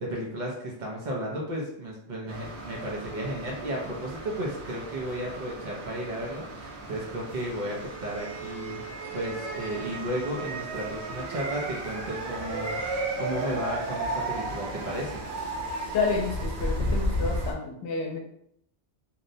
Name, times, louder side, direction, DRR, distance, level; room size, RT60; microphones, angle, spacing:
voice 1, 0.0-8.8 9.1-15.3, right 1 dB, 55° right, -2 dB, 0.6 m, -34 dB
sound 1, 2.3-17.5, right 1 dB, 80° right, 0.8 m, -34 dB
voice 2, 15.9-18.2, left 4 dB, 85° left, 2 dB, 0.9 m, -29 dB
2.7 x 2.0 x 2.6 m, 0.71 s
omnidirectional pair, 1.1 m